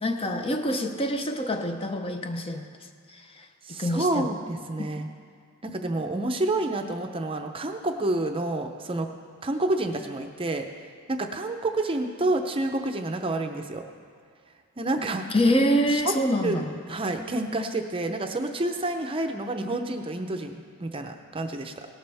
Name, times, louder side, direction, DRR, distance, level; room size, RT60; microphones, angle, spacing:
voice 1, 0.0-2.6 3.8-4.3 15.3-16.7, equal, 25° left, 6 dB, 0.6 m, -25 dB
voice 2, 3.7-5.1 5.6-9.1 9.4-10.7 11.1-13.8 14.8-15.2 15.9-16.2 16.4-16.6 16.9-21.9, right 2 dB, 25° right, 5 dB, 0.6 m, -29 dB
17.5 x 12.0 x 3.5 m, 2.1 s
head